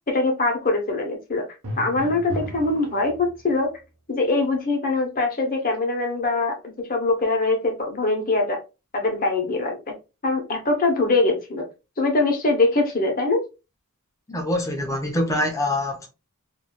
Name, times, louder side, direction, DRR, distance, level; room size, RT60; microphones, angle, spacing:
voice 1, 0.1-1.4 1.8-3.8 4.1-8.6 8.9-9.8 10.2-11.6 12.0-13.4, left 2 dB, 40° left, 0.9 m, -23 dB
Drum, 1.6-3.7, equal, 65° right, 1.1 m, -35 dB
voice 2, 14.3-16.1, left 1 dB, 15° left, 0.6 m, -24 dB
3.1 x 2.6 x 2.2 m
head